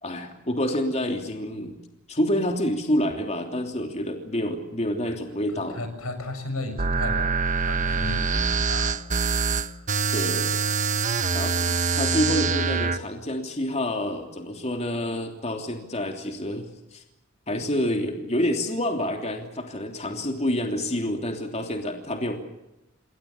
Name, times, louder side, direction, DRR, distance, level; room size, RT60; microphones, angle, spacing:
voice 1, 0.0-1.8 2.1-5.8 10.1-10.5 11.3-17.0 17.5-22.4, left 1 dB, 30° left, 3 dB, 3.2 m, -28 dB
voice 2, 5.7-9.0 9.7-9.8, left 2 dB, 85° left, 9 dB, 6.9 m, -35 dB
sound 1, 6.8-13.0, right 4 dB, 35° right, 1.2 m, -24 dB
29.5 x 22.0 x 7.2 m, 0.93 s
head